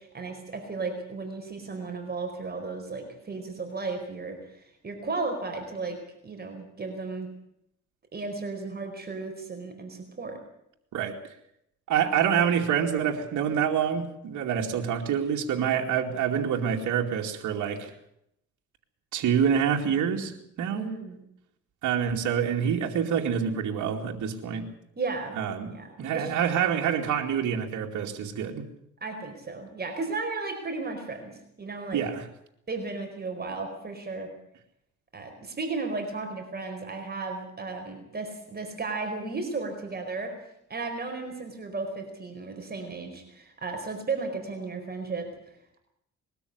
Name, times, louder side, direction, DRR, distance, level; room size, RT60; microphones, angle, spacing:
voice 1, 0.0-7.3 8.1-10.4 20.7-21.2 25.0-25.4 25.7-26.3 29.0-32.0 32.7-34.3 35.1-40.3 40.7-45.3, right 3 dB, 30° right, 4 dB, 4.7 m, -34 dB
voice 2, 11.9-17.9 19.1-20.3 20.6-20.9 21.8-24.7 25.4-28.7 31.9-32.3, right 8 dB, 75° right, 1 dB, 2.6 m, -26 dB
21.5 x 13.0 x 9.7 m, 0.78 s
cardioid pair, 90°, 30 cm